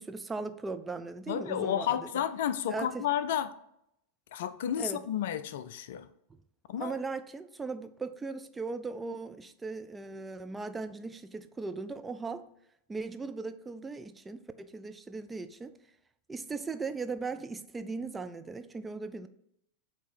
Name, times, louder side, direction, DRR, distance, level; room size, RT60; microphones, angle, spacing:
voice 1, 0.0-2.0 2.7-3.1 4.8-5.0 6.8-12.4 12.9-15.7 16.3-19.3, right 4 dB, 10° right, 0.4 m, -38 dB
voice 2, 1.3-3.5 4.3-6.1 6.7-7.0, left 10 dB, 55° left, 0.4 m, -31 dB
8.2 x 2.8 x 4.3 m
figure-of-eight pair, 90°, 0 cm